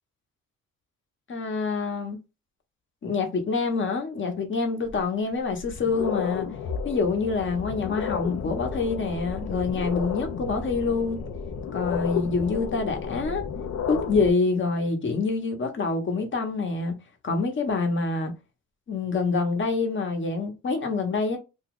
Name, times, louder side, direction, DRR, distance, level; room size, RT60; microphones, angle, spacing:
voice 1, 1.3-2.2 3.0-6.5 6.8-11.2 11.7-13.4 13.9-16.9 17.2-18.3 18.9-21.4, left 4 dB, 40° left, 1.1 m, -26 dB
sound 1, 4.9-5.0 5.5-14.3, left 6 dB, 60° left, 0.7 m, -32 dB
2.7 x 2.4 x 3.6 m
cardioid pair, 90°, 30 cm